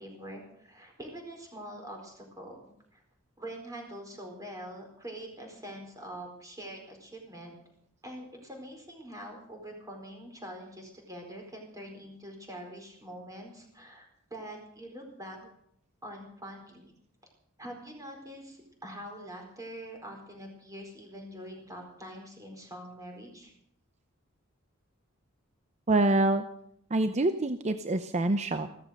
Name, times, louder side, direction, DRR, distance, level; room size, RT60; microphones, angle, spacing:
voice 1, 0.0-2.6 2.9-3.0 3.4-7.5 8.0-15.4 16.0-16.9 17.6-23.5, right 1 dB, 15° right, 2 dB, 4.6 m, -44 dB
voice 2, 25.9-26.4 26.9-28.7, right 2 dB, 35° right, 9 dB, 0.7 m, -26 dB
15.5 x 13.5 x 6.5 m, 0.71 s
head